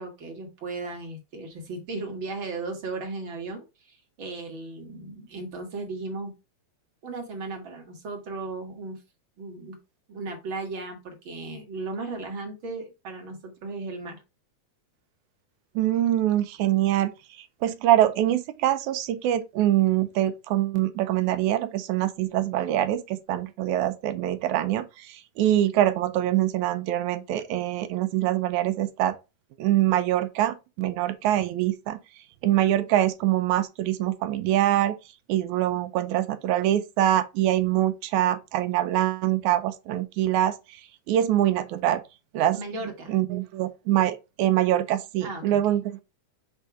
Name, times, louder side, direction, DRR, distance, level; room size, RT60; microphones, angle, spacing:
voice 1, 0.0-6.4 7.0-9.0 9.4-9.8 10.1-14.2 42.5-43.2 45.2-45.6, right 3 dB, 45° right, 2.2 m, -36 dB
voice 2, 15.8-17.1 17.4-29.1 29.6-32.0 32.4-35.0 35.3-40.8 41.1-42.0 42.3-42.6 43.1-46.0, right 13 dB, 80° right, 2.1 m, -24 dB
6.7 x 3.5 x 4.6 m
omnidirectional pair, 3.4 m